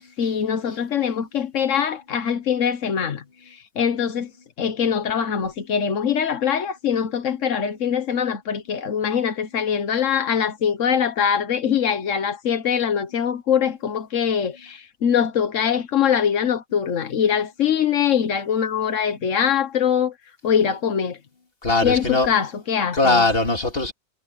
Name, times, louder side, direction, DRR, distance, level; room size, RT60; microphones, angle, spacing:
voice 1, 0.2-4.3 4.6-20.1 20.4-21.2 21.8-23.2, left 8 dB, 90° left, 1.5 m, -23 dB
voice 2, 21.6-22.3 22.9-23.9, left 3 dB, 50° left, 3.2 m, -20 dB
omnidirectional pair, 1.3 m